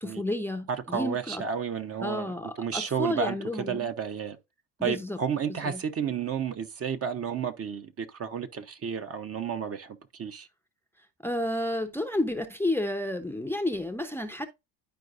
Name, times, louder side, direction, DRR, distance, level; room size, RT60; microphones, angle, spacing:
voice 1, 0.0-1.4 2.0-3.9 4.8-5.2 5.5-5.8 11.2-14.5, left 1 dB, 5° left, 0.7 m, -31 dB
voice 2, 0.7-2.3 2.6-4.4 4.8-10.5, right 7 dB, 30° right, 0.9 m, -32 dB
11.0 x 4.6 x 2.5 m
hypercardioid pair, 75°, 47 cm